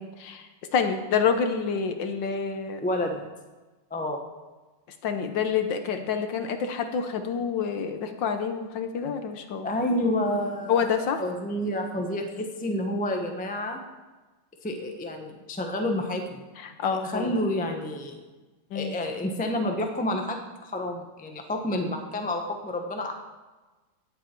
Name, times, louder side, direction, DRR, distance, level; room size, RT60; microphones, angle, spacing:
voice 1, 0.0-2.8 5.0-9.7 10.7-11.2 16.6-17.4 18.7-19.0, left 6 dB, 65° left, 7 dB, 1.5 m, -28 dB
voice 2, 2.8-3.3 3.9-4.2 9.6-10.8 11.2-13.8 14.6-16.4 16.9-18.2 18.7-23.1, left 1 dB, 10° left, 3 dB, 0.5 m, -29 dB
17.0 x 7.7 x 4.5 m, 1.2 s
omnidirectional pair, 2.3 m